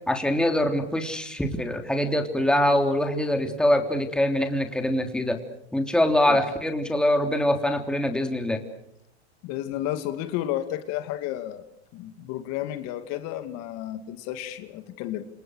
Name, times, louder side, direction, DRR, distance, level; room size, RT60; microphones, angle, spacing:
voice 1, 0.1-5.4 5.7-8.6, left 1 dB, ahead, 5 dB, 3.3 m, -24 dB
voice 2, 9.4-11.6 11.9-15.2, left 13 dB, 50° left, 9 dB, 2.6 m, -32 dB
28.5 x 28.0 x 6.6 m, 0.72 s
hypercardioid pair, 125°, 33 cm